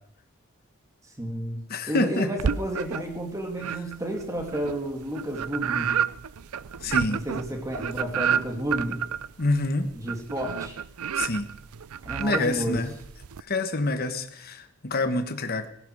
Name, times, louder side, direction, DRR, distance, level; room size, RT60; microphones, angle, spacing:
voice 1, 1.2-5.9 7.1-9.0 9.9-10.8 12.1-12.8, equal, 15° right, 3 dB, 2.6 m, -31 dB
voice 2, 1.7-2.3 6.8-7.2 9.4-9.9 11.2-11.5 12.2-12.9 13.5-15.7, left 2 dB, 45° left, 8 dB, 1.3 m, -27 dB
sound 1, 2.4-3.2 3.6-13.4, right 8 dB, 90° right, 0.5 m, -30 dB
16.5 x 15.0 x 4.9 m, 0.69 s
head